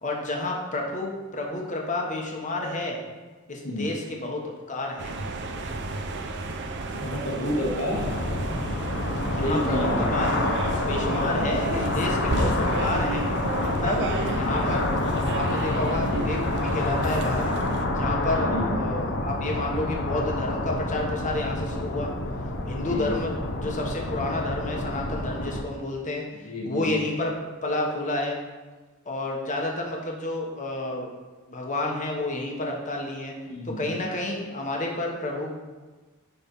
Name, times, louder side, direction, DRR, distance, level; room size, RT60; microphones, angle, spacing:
voice 1, 0.0-3.0 3.5-4.4 4.7-5.1 9.3-10.3 10.9-13.2 13.6-14.0 14.3-14.9 15.3-17.5 17.9-22.1 22.7-27.3 27.6-28.4 29.0-31.1 31.5-33.3 33.6-35.5, left 2 dB, 35° left, 0 dB, 1.2 m, -30 dB
sound 1, 5.0-17.9, right 2 dB, 55° right, 0.7 m, -32 dB
voice 2, 6.9-8.0 9.3-10.1 11.2-11.5 12.2-12.5 13.7-14.3 16.0-16.3 18.3-18.8 22.8-23.1 26.4-27.0 33.5-34.1, equal, 80° left, -1 dB, 1.7 m, -30 dB
sound 2, 7.9-25.6, left 2 dB, 55° left, 0.8 m, -28 dB
10.0 x 3.5 x 5.4 m, 1.3 s
head